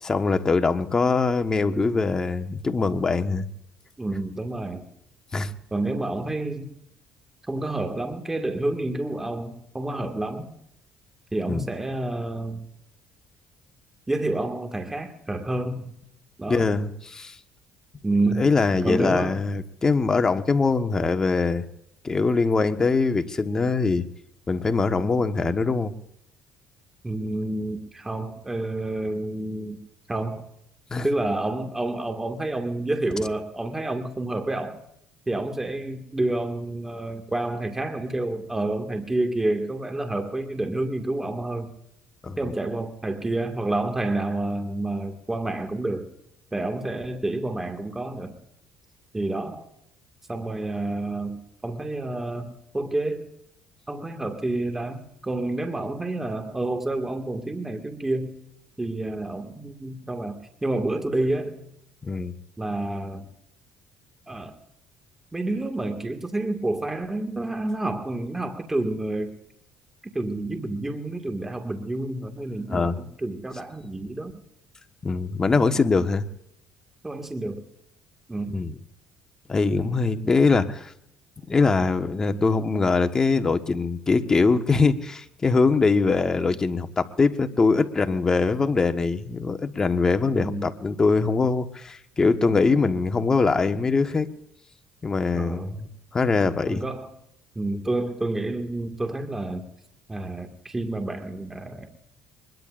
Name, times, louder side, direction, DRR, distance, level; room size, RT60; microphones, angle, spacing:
voice 1, 0.0-3.4 5.3-5.5 11.5-11.6 16.5-17.4 18.4-21.6 22.0-24.1 24.5-25.9 30.9-31.1 42.2-42.4 62.0-62.4 72.7-72.9 75.0-76.2 78.5-78.7 79.5-80.9 81.5-94.3 95.0-95.9 96.1-96.8, left 4 dB, 25° left, 7 dB, 1.4 m, -22 dB
voice 2, 4.0-4.9 5.7-6.7 7.5-10.5 11.3-12.7 14.1-15.9 16.4-16.7 18.0-18.5 18.8-19.4 27.0-29.8 30.1-30.4 31.0-34.8 35.3-41.7 42.4-46.1 46.5-48.4 49.1-49.7 50.3-53.3 53.9-58.4 58.8-61.6 62.6-63.3 64.3-64.6 65.3-69.3 70.0-74.3 77.0-77.7 78.3-78.6 79.6-79.8 90.3-90.7 95.3-95.8 96.7-97.1 97.6-99.6 100.1-102.0, right 2 dB, 15° right, 4 dB, 2.0 m, -29 dB
24.0 x 21.5 x 2.6 m, 0.77 s
supercardioid pair, 90°, 2 cm